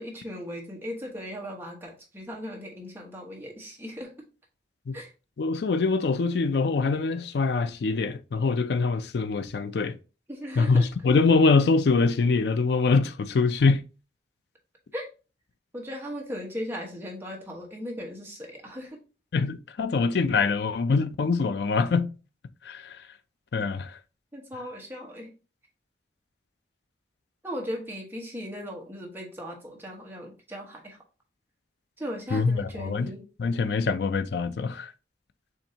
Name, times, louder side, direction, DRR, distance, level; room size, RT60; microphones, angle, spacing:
voice 1, 0.0-4.1 4.9-5.1 10.3-10.9 14.9-15.1 15.7-19.0 24.3-25.3 27.4-31.0 32.0-33.2, equal, 10° right, 1.1 m, -37 dB
voice 2, 5.4-9.9 10.6-13.8 19.3-22.1 22.6-23.0 23.5-24.0 32.3-33.1 33.4-34.9, left 4 dB, 65° left, 0.4 m, -24 dB
7.1 x 2.7 x 2.8 m
head